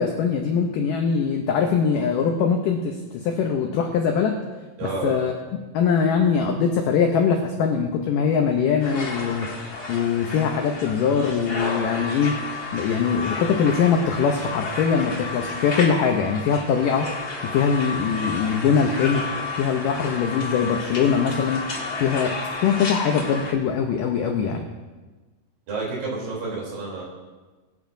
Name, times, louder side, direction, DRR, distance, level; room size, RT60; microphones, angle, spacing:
voice 1, 0.0-4.4 4.8-5.3 5.7-12.4 12.7-17.1 17.4-19.3 19.6-21.7 22.0-22.3 22.6-24.7, left 6 dB, 85° left, 3 dB, 1.9 m, -22 dB
voice 2, 4.8-5.2 25.7-27.0, right 3 dB, 55° right, -4 dB, 4.9 m, -29 dB
sound 1, 8.8-23.5, left 3 dB, 60° left, 0.9 m, -32 dB
21.5 x 9.5 x 2.7 m, 1.3 s
omnidirectional pair, 4.9 m